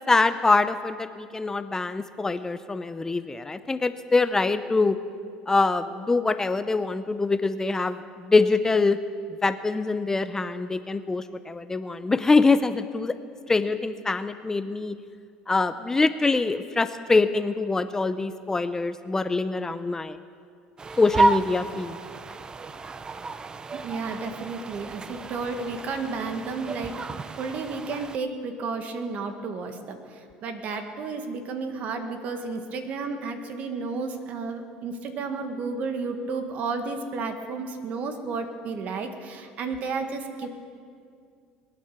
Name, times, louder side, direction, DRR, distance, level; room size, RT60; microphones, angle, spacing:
voice 1, 0.1-5.0 5.5-9.0 9.4-13.1 13.5-15.0 15.5-20.2 21.0-22.0, left 3 dB, 15° left, 12 dB, 0.6 m, -24 dB
sound 1, 20.8-28.2, right 3 dB, 25° right, 0.6 m, -31 dB
voice 2, 23.7-26.9 27.4-40.5, right 4 dB, 55° right, 6 dB, 1.8 m, -32 dB
21.0 x 9.4 x 7.0 m, 2.3 s
supercardioid pair, 95°, 3 cm